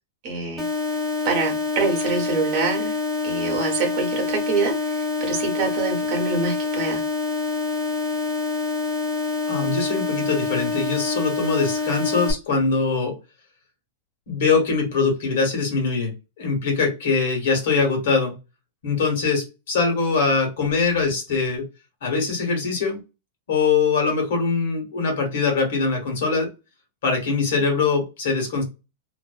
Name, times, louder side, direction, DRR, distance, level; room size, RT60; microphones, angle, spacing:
voice 1, 0.2-0.7 1.2-3.0 3.2-7.0, right 4 dB, 35° right, 2 dB, 0.9 m, -25 dB
sound 1, 0.6-12.3, left 4 dB, 5° right, 0.5 m, -26 dB
voice 2, 9.5-13.2 14.3-18.3 18.8-21.6 22.0-23.0 23.5-26.5 27.0-28.6, left 4 dB, 65° left, 2 dB, 1.2 m, -22 dB
2.6 x 2.0 x 2.3 m, 0.27 s
supercardioid pair, 170°, 0 cm